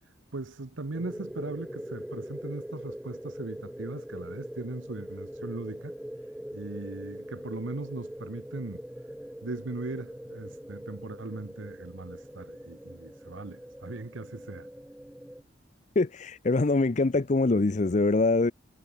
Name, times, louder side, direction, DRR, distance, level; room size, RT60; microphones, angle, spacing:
voice 1, 0.3-5.9 6.5-8.8 9.4-14.7, right 2 dB, 90° right, 1.0 m, -39 dB
sound 1, 0.9-15.4, equal, 5° right, 0.6 m, -42 dB
voice 2, 16.0-18.5, left 3 dB, 40° left, 0.5 m, -24 dB
head